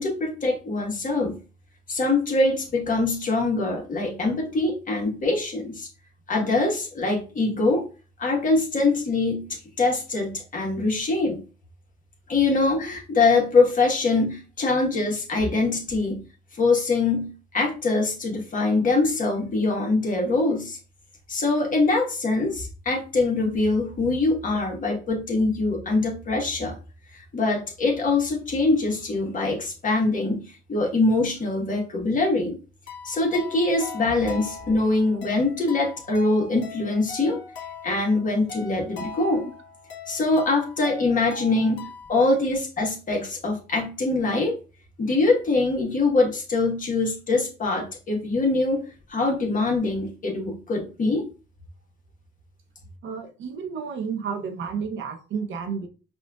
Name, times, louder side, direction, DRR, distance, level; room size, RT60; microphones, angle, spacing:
voice 1, 0.0-1.4 1.9-5.9 6.3-7.9 8.2-11.4 12.3-16.2 16.5-20.8 21.3-26.8 27.1-32.6 33.0-37.4 37.8-39.5 40.1-44.6 45.0-48.8 49.1-51.3, left 3 dB, 40° left, 0 dB, 1.4 m, -23 dB
sound 1, 32.9-42.3, left 4 dB, 65° left, 1.5 m, -41 dB
voice 2, 53.0-55.9, right 6 dB, 70° right, 6 dB, 0.8 m, -32 dB
5.2 x 2.5 x 2.3 m, 0.34 s
cardioid pair, 90°, 20 cm